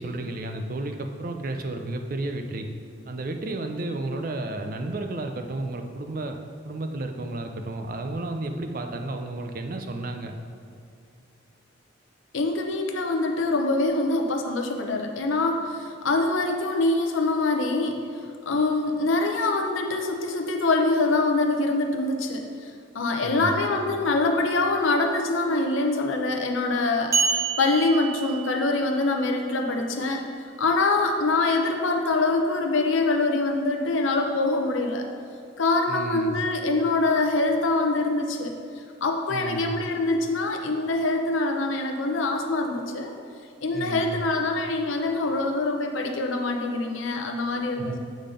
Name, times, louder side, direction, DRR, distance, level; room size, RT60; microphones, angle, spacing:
voice 1, 0.0-2.7 3.1-6.4 6.6-10.4 23.2-23.6 35.9-36.4 39.3-39.8 43.7-44.2 47.8-48.0, right 2 dB, 45° right, 5 dB, 0.5 m, -32 dB
voice 2, 12.3-18.0 18.5-22.5 22.9-30.2 30.6-35.0 35.6-38.5 39.0-43.1 43.6-48.0, left 2 dB, 70° left, 3 dB, 0.7 m, -24 dB
sound 1, 27.1-29.0, right 5 dB, 15° right, 0.9 m, -27 dB
8.3 x 4.0 x 5.1 m, 2.4 s
head